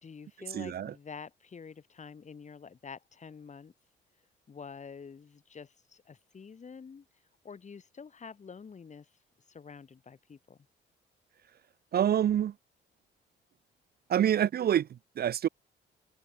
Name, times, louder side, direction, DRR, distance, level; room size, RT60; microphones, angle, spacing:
voice 1, 0.0-3.7 4.5-7.1 7.4-9.1 9.5-10.6, left 5 dB, 35° left, 2.2 m, -47 dB
voice 2, 0.5-0.9 11.9-12.5 14.1-15.5, right 10 dB, 50° right, 0.6 m, -27 dB
cardioid pair, 90°, 20 cm